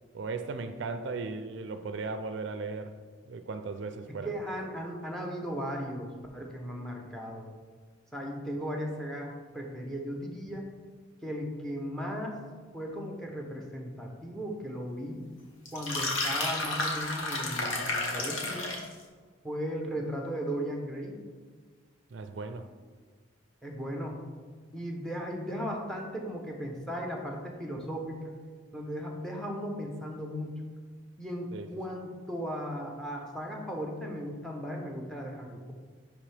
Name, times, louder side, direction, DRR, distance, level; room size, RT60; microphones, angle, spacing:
voice 1, 0.1-3.0 3.3-4.3 22.1-22.7 31.5-31.7, right 4 dB, 60° right, 0.4 m, -37 dB
voice 2, 4.1-7.5 8.1-10.6 11.2-12.4 12.7-15.2 15.7-18.8 19.4-21.2 23.6-24.2 24.7-28.3 28.7-30.6 31.2-35.7, equal, 5° left, 0.7 m, -36 dB
sound 1, 15.7-18.9, left 2 dB, 85° left, 1.1 m, -31 dB
10.0 x 3.4 x 3.3 m
head